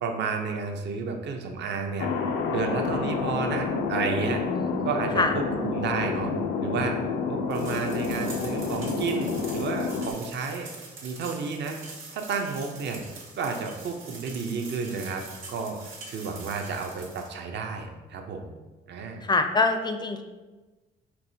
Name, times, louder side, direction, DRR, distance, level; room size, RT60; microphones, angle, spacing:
voice 1, 0.0-2.1 2.5-4.4 4.8-6.3 6.6-7.0 7.3-10.7 11.0-11.8 12.1-13.0 13.4-15.2 15.5-18.5 18.9-19.2, right 5 dB, 60° right, 4 dB, 0.5 m, -31 dB
Thunder, 2.0-10.1, left 5 dB, 85° left, 0.4 m, -29 dB
voice 2, 4.5-4.9 5.2-5.3 19.2-20.2, left 3 dB, 20° left, 7 dB, 0.4 m, -25 dB
sound 1, 7.5-17.3, right 3 dB, 90° right, 1.0 m, -44 dB
4.5 x 3.3 x 2.6 m, 1.2 s
cardioid pair, 90°, 20 cm